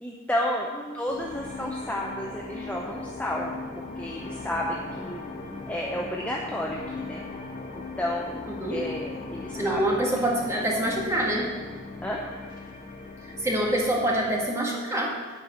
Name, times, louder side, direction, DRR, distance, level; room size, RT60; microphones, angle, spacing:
voice 1, 0.0-3.5 4.0-5.2 5.7-7.2 7.7-8.4 8.7-9.8 12.0-12.2, left 1 dB, 5° left, -2 dB, 0.7 m, -31 dB
sound 1, 1.1-14.4, left 3 dB, 40° left, 1.4 m, -38 dB
voice 2, 9.5-11.5 13.2-15.2, right 1 dB, 15° right, -3 dB, 1.7 m, -26 dB
10.5 x 4.7 x 8.2 m, 1.5 s
head